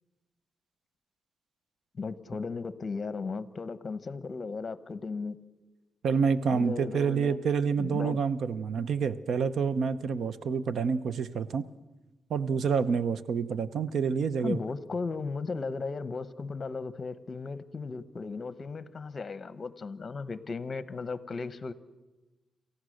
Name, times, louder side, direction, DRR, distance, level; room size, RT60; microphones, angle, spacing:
voice 1, 2.0-5.4 6.5-7.4 7.8-8.2 14.4-21.7, left 4 dB, 40° left, 14 dB, 0.9 m, -36 dB
voice 2, 6.0-11.7 12.3-14.6, right 6 dB, 70° right, 14 dB, 0.7 m, -28 dB
28.0 x 14.5 x 6.5 m, 1.1 s
cardioid pair, 115°, 0 cm